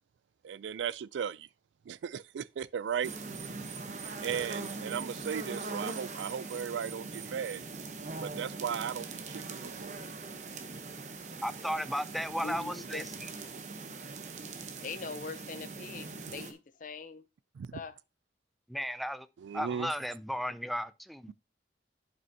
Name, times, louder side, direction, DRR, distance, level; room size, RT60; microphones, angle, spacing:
voice 1, 0.4-1.5 1.9-3.1 4.2-7.6 8.2-10.0 17.6-17.8 19.4-19.9, right 7 dB, 80° right, 0.3 m, -36 dB
sound 1, 3.0-16.5, right 4 dB, 40° right, 0.8 m, -41 dB
voice 2, 11.4-13.0 18.7-19.3 19.5-21.3, equal, ahead, 0.3 m, -34 dB
voice 3, 12.3-13.1 14.8-17.2 17.7-18.0, left 4 dB, 45° left, 0.6 m, -42 dB
11.0 x 5.3 x 2.7 m
head